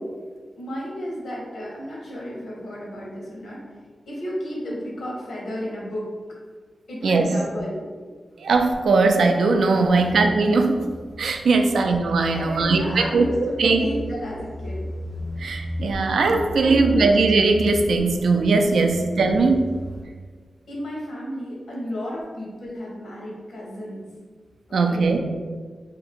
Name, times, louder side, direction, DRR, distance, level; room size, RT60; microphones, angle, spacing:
voice 1, 0.6-3.6 4.1-6.1 6.9-7.9 9.9-10.1 11.6-11.7 12.3-14.9 16.6-17.1 18.8-19.1 20.7-24.1 24.7-25.1, equal, 65° left, -4 dB, 1.1 m, -33 dB
voice 2, 8.4-10.9 11.2-13.9 15.4-19.8 24.7-25.2, right 3 dB, 85° right, 5 dB, 0.3 m, -19 dB
sound 1, 8.5-20.0, equal, 30° left, 1.2 m, -36 dB
2.8 x 2.5 x 4.3 m, 1.5 s
wide cardioid pair, 165°, 0 cm